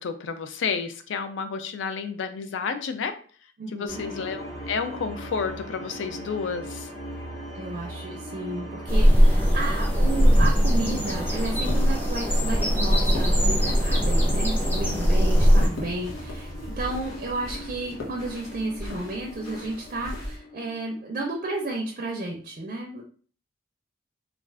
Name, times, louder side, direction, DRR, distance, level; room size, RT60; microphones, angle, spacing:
voice 1, 0.0-3.1 3.7-6.9 15.5-15.7, left 5 dB, 70° left, 8 dB, 0.4 m, -31 dB
voice 2, 3.6-4.0 7.5-23.0, right 2 dB, 40° right, 1 dB, 0.4 m, -33 dB
sound 1, 3.9-22.2, equal, 55° left, 1.0 m, -40 dB
sound 2, 8.9-15.7, equal, 10° left, 0.6 m, -20 dB
sound 3, 11.3-20.4, left 1 dB, 85° left, 0.8 m, -37 dB
2.4 x 2.3 x 3.2 m, 0.43 s
head